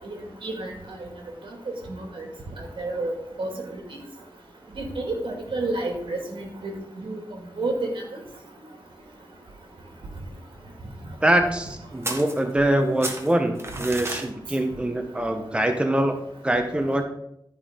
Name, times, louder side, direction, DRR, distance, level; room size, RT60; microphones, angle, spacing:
voice 1, 1.9-2.2 2.8-3.5 5.0-7.2 7.6-7.9, right 2 dB, 80° right, 1 dB, 2.1 m, -29 dB
voice 2, 11.2-16.2 16.4-17.0, right 1 dB, 10° right, 5 dB, 0.8 m, -23 dB
sound 1, 12.0-12.8 13.0-14.3, right 2 dB, 30° right, 1.2 m, -32 dB
12.0 x 5.2 x 3.6 m, 0.77 s
wide cardioid pair, 75°, 9 cm